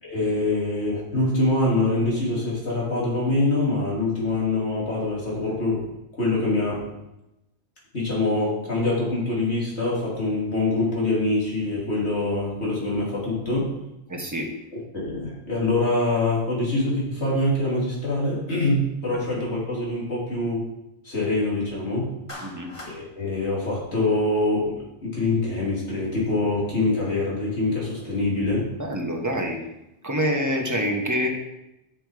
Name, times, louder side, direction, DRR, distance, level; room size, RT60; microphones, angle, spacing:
voice 1, 0.0-5.9 6.2-6.8 7.9-13.7 14.9-20.7 21.0-22.1 22.8-28.7, left 2 dB, 80° left, -5 dB, 3.4 m, -24 dB
voice 2, 14.1-14.5 19.1-19.2 22.4-22.7 28.8-29.6 30.0-31.3, equal, 15° right, 1 dB, 1.2 m, -26 dB
Clapping, 22.3-23.0, left 1 dB, 30° left, 1.5 m, -39 dB
7.4 x 7.1 x 5.0 m, 0.90 s
omnidirectional pair, 1.1 m